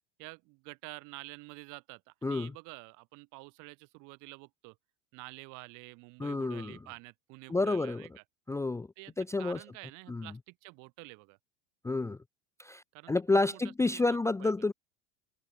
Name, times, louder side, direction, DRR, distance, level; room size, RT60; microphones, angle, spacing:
voice 1, 0.2-4.8 5.1-8.2 9.0-11.4 12.9-14.0 14.4-14.5, right 27 dB, 55° right, 1.9 m, -49 dB
voice 2, 6.2-6.8 7.5-8.1 8.5-8.9 9.2-9.6 10.1-10.3 11.8-12.2 12.6-14.7, left 3 dB, 10° left, 0.6 m, -30 dB
hypercardioid pair, 85°, 37 cm